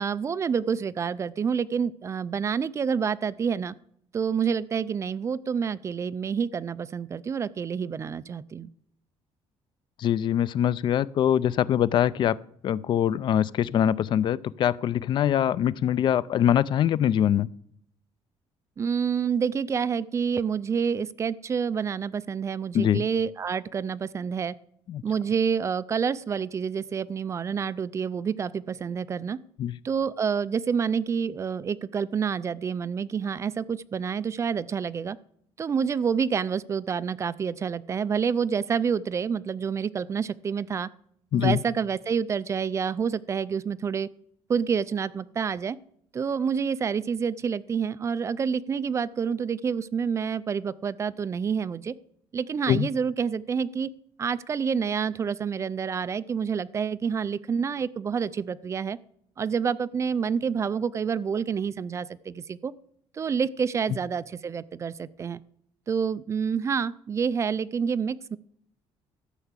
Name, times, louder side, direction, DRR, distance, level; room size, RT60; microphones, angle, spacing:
voice 1, 0.0-3.7 4.1-8.7 18.8-24.5 25.0-29.4 29.8-35.2 35.6-40.9 41.3-44.1 44.5-45.8 46.1-51.9 52.3-53.9 54.2-59.0 59.4-62.7 63.1-65.4 65.9-68.4, right 6 dB, 25° right, 17 dB, 0.4 m, -28 dB
voice 2, 10.0-12.4 12.6-17.5 22.7-23.1 24.9-25.0 29.6-29.8 41.3-41.6 52.7-52.9, left 10 dB, 45° left, 20 dB, 0.4 m, -23 dB
13.0 x 5.8 x 8.1 m, 0.66 s
cardioid pair, 155°, 11 cm